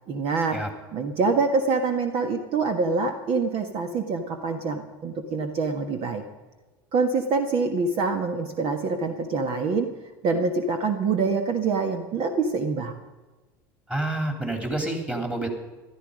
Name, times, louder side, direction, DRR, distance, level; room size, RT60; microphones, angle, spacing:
voice 1, 0.1-0.6 0.9-6.2 6.9-9.9 10.2-13.0, right 4 dB, 50° right, 6 dB, 1.5 m, -25 dB
voice 2, 13.9-15.5, right 1 dB, 10° right, 4 dB, 3.3 m, -28 dB
15.0 x 13.0 x 5.1 m, 1.2 s
hypercardioid pair, 90°, 12 cm